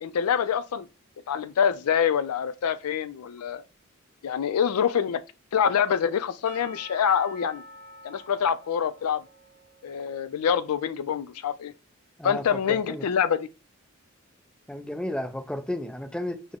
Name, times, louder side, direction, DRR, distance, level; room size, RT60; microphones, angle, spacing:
voice 1, 0.0-0.9 1.3-3.6 4.2-5.2 5.5-7.6 8.0-9.2 9.8-11.7 12.2-13.5, left 7 dB, 90° left, 0.4 m, -25 dB
Percussion / Church bell, 6.5-10.8, left 1 dB, 40° right, 0.8 m, -48 dB
voice 2, 12.2-13.0 14.7-16.6, left 1 dB, 5° left, 0.3 m, -33 dB
3.5 x 2.1 x 3.5 m
head